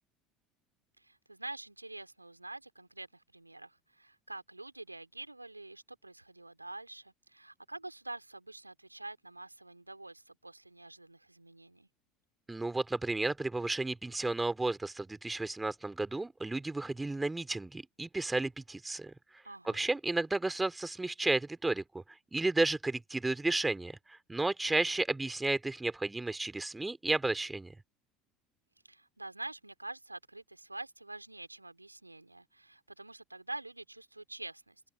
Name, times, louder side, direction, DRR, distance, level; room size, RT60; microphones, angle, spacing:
voice 1, 1.0-11.9 19.4-19.9 28.9-34.8, right 2 dB, 90° right, 3.3 m, -46 dB
voice 2, 12.5-19.1 19.6-21.8 22.3-27.7, right 2 dB, 10° right, 3.2 m, -32 dB
figure-of-eight pair, 70°, 0 cm